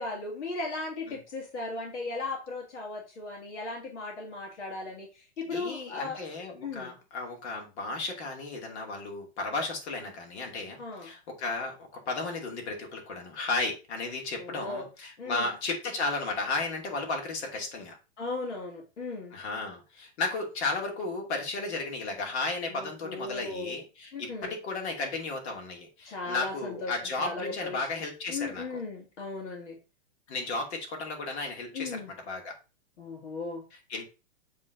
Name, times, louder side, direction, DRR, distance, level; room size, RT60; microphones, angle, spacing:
voice 1, 0.0-5.1 5.4-6.2 6.6-6.9 10.8-11.1 14.4-14.9 15.2-15.5 18.2-19.3 22.7-23.8 24.1-24.5 26.1-26.9 27.2-27.8 28.3-29.8 31.7-32.1 33.0-33.6, left 3 dB, 85° left, 0 dB, 2.2 m, -36 dB
voice 2, 5.4-18.0 19.3-28.8 30.3-32.5 33.7-34.0, left 3 dB, 70° left, 1 dB, 2.5 m, -34 dB
7.4 x 3.8 x 3.8 m, 0.31 s
hypercardioid pair, 140°, 34 cm